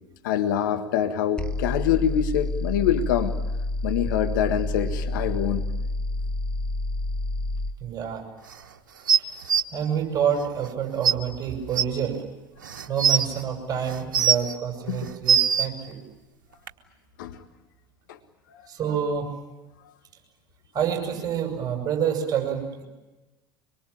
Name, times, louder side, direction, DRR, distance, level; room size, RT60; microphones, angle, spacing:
voice 1, 0.2-3.3 3.8-5.7 14.9-15.1 17.2-17.4 18.1-18.2 18.5-18.6, left 9 dB, 70° left, 8 dB, 1.6 m, -25 dB
sound 1, 1.4-7.8, left 2 dB, 10° left, 1.6 m, -29 dB
voice 2, 7.8-8.2 9.1-9.3 9.7-12.2 12.9-16.0 18.7-19.3 20.7-22.8, right 8 dB, 35° right, 4 dB, 7.9 m, -28 dB
sound 2, 9.1-9.6 10.7-10.8 11.0-11.1 11.7-11.8 12.6-13.2 13.9-14.5 15.0-15.7 16.7-16.8, right 7 dB, 80° right, 1.2 m, -20 dB
24.5 x 23.0 x 8.7 m, 1.1 s
hypercardioid pair, 75°, 11 cm